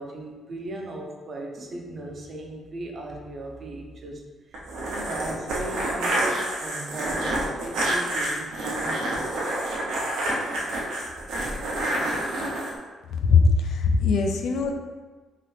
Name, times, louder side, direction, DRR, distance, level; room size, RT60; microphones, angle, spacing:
voice 1, 0.0-9.6, right 1 dB, 45° right, 1 dB, 0.6 m, -38 dB
sound 1, 4.5-12.7, right 1 dB, 85° right, 0.7 m, -28 dB
voice 2, 13.3-14.7, left 4 dB, 75° left, 4 dB, 0.3 m, -20 dB
2.8 x 2.6 x 3.2 m, 1.3 s
cardioid pair, 90°, 0 cm